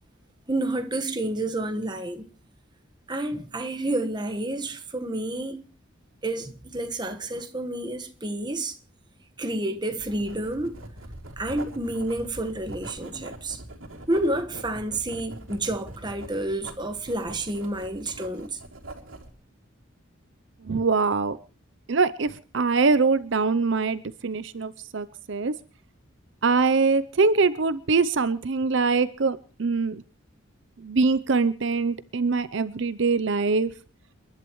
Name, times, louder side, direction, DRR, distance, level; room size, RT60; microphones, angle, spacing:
voice 1, 0.5-2.3 3.1-5.7 6.2-8.8 9.4-10.8 11.4-13.6 14.1-18.6, right 1 dB, 20° right, 1.4 m, -29 dB
Writing, 10.0-19.3, right 1 dB, 85° right, 3.2 m, -43 dB
voice 2, 20.6-21.4 21.9-25.6 26.4-30.0 30.8-33.7, right 4 dB, 65° right, 0.6 m, -23 dB
29.5 x 11.5 x 3.1 m
head